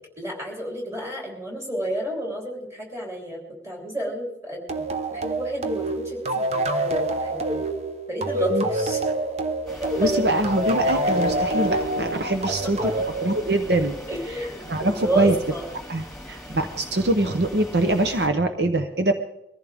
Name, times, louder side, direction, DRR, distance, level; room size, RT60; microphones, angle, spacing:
voice 1, 0.2-4.8 5.1-7.6 8.1-9.0 9.8-10.3 12.5-12.9 14.1-15.7, right 1 dB, 15° right, -1 dB, 3.7 m, -31 dB
sound 1, 4.7-13.9, right 1 dB, 35° right, 1.0 m, -26 dB
sound 2, 9.7-18.3, equal, ahead, 2.3 m, -41 dB
voice 2, 10.0-12.9 13.2-14.0 14.6-15.3 15.9-19.1, right 1 dB, 65° right, 6 dB, 0.9 m, -23 dB
23.0 x 15.0 x 3.6 m, 0.86 s
head